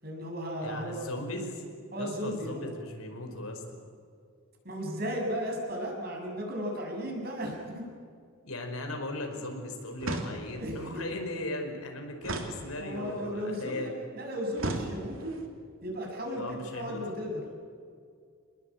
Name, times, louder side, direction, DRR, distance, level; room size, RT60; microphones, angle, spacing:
voice 1, 0.0-1.1 1.9-2.7 4.6-7.8 10.5-10.8 12.8-15.4 15.8-17.4, equal, 45° right, 0 dB, 7.3 m, -35 dB
voice 2, 0.6-1.6 2.0-3.8 8.4-14.0 16.4-17.0, left 1 dB, 80° left, 4 dB, 5.1 m, -37 dB
sound 1, 10.0-10.8 12.2-13.2 14.6-15.4, right 2 dB, 65° right, 3.2 m, -36 dB
28.0 x 20.5 x 8.7 m, 2.2 s
head